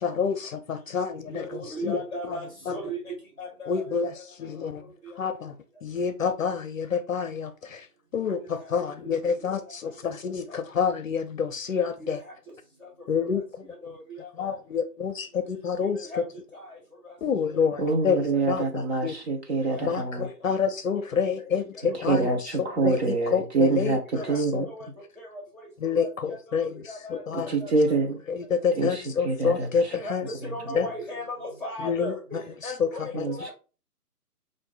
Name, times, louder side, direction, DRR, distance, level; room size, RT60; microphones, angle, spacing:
voice 1, 0.0-1.4 1.8-2.4 2.7-2.8 3.7-5.5 5.8-7.9 8.1-12.2 13.1-13.6 14.4-16.2 17.2-19.2 19.7-24.7 25.8-26.8 27.1-27.6 28.3-30.3 30.7-30.9 31.8-32.1 32.8-33.3, left 6 dB, 60° left, 11 dB, 0.6 m, -28 dB
voice 2, 1.3-3.1 3.4-3.9 5.0-5.1 8.6-8.7 9.0-9.1 12.1-12.3 13.3-13.4 13.8-14.5 15.9-16.2 16.5-16.7 17.0-17.1 21.4-21.5 21.7-22.0 24.1-24.4 24.6-24.9 25.2-27.9 29.9-33.5, equal, 5° right, -1 dB, 1.8 m, -38 dB
voice 3, 17.8-20.3 22.1-24.0 24.3-24.7 27.3-28.2 28.8-29.7 33.1-33.5, right 3 dB, 45° right, 2 dB, 0.9 m, -26 dB
7.0 x 2.6 x 2.3 m, 0.33 s
hypercardioid pair, 165°, 47 cm